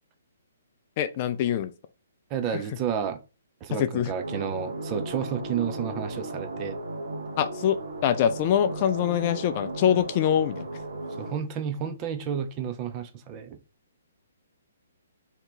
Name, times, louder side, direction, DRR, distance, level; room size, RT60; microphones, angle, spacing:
voice 1, 1.0-1.7 2.5-2.6 3.8-4.1 7.4-10.7, left 10 dB, 40° left, 0.4 m, -24 dB
voice 2, 2.3-3.2 3.6-6.8 11.2-13.6, right 8 dB, 25° right, 0.5 m, -31 dB
sound 1, 4.2-11.3, right 2 dB, 80° right, 1.2 m, -35 dB
3.3 x 2.9 x 4.0 m
hypercardioid pair, 145°, 0 cm